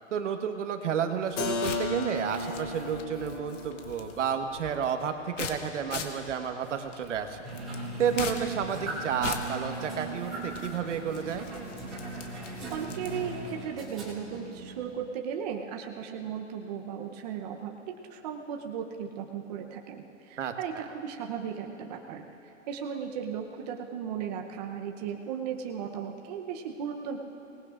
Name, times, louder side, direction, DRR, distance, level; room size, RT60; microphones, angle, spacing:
voice 1, 0.1-7.4 8.0-11.5 20.4-20.8, right 7 dB, 70° right, 6 dB, 1.3 m, -31 dB
sound 1, 1.2-13.4, left 5 dB, 70° left, 1.6 m, -42 dB
Keyboard (musical), 1.4-7.0, left 3 dB, 30° left, 1.2 m, -37 dB
sound 2, 7.4-14.9, right 2 dB, 5° right, 0.3 m, -38 dB
voice 2, 12.4-27.2, right 7 dB, 35° right, 2 dB, 0.8 m, -36 dB
25.0 x 19.5 x 2.5 m, 3.0 s
hypercardioid pair, 160°, 38 cm